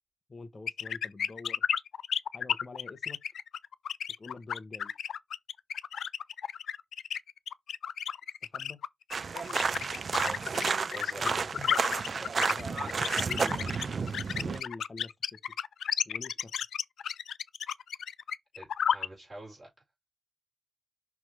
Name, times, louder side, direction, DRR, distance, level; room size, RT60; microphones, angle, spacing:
voice 1, 0.3-1.6 2.3-3.2 4.2-4.9 8.5-8.8 11.1-11.8 12.1-15.4 16.0-16.5, left 3 dB, 30° left, 1.1 m, -46 dB
sound 1, 0.7-19.1, left 8 dB, 90° left, 0.3 m, -32 dB
sound 2, 9.1-14.6, right 5 dB, 45° right, 0.3 m, -31 dB
voice 2, 10.9-11.5 12.1-12.2 18.5-19.7, right 1 dB, 20° right, 4.5 m, -46 dB
5.9 x 3.6 x 4.7 m
wide cardioid pair, 130°, 0 cm